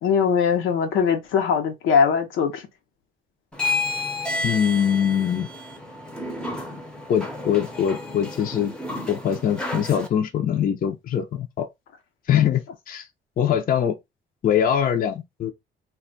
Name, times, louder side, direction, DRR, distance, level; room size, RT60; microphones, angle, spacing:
voice 1, 0.0-2.7, left 6 dB, 85° left, 0.7 m, -21 dB
sound 1, 3.5-10.1, left 2 dB, 5° left, 0.6 m, -31 dB
voice 2, 4.4-5.5 7.1-8.7 9.1-11.7 12.3-13.1 13.4-14.0 14.4-15.5, left 9 dB, 45° left, 0.5 m, -23 dB
2.2 x 2.1 x 3.8 m
cardioid pair, 90°, 20 cm